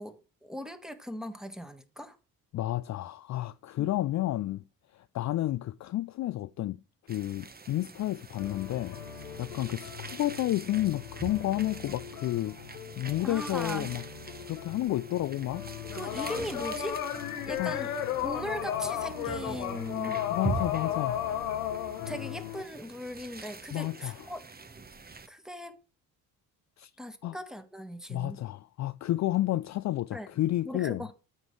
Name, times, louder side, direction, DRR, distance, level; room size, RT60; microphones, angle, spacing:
voice 1, 0.0-2.2 13.2-13.9 15.9-17.0 17.4-17.9 18.2-20.2 22.1-24.4 25.3-25.8 27.0-28.4 30.1-30.3 30.6-31.1, equal, ahead, 1.5 m, -39 dB
voice 2, 2.5-4.6 4.9-6.8 7.1-9.0 9.4-12.6 13.0-14.0 14.5-15.7 17.6-17.9 20.3-21.3 23.7-24.3 26.8-26.9 27.2-27.4 28.1-31.0, left 15 dB, 45° left, 0.5 m, -31 dB
sound 1, 7.1-25.3, right 4 dB, 20° right, 1.1 m, -43 dB
sound 2, 8.4-22.6, left 10 dB, 85° left, 1.2 m, -36 dB
13.5 x 5.4 x 3.2 m
hypercardioid pair, 45°, 42 cm